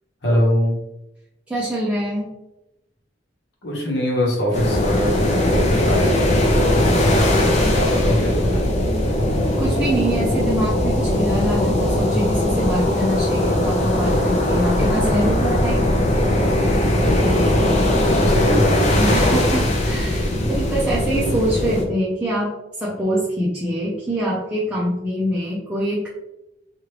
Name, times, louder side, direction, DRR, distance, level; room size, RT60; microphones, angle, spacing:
voice 1, 0.2-0.8 3.6-8.6 16.9-19.4, equal, 65° left, -3 dB, 1.0 m, -23 dB
voice 2, 1.5-2.3 9.6-15.9 19.0-22.5 22.8-26.1, right 1 dB, 5° right, -7 dB, 0.5 m, -24 dB
sound 1, 4.5-21.8, left 1 dB, 40° left, 0.5 m, -19 dB
3.0 x 2.4 x 3.2 m, 0.90 s
head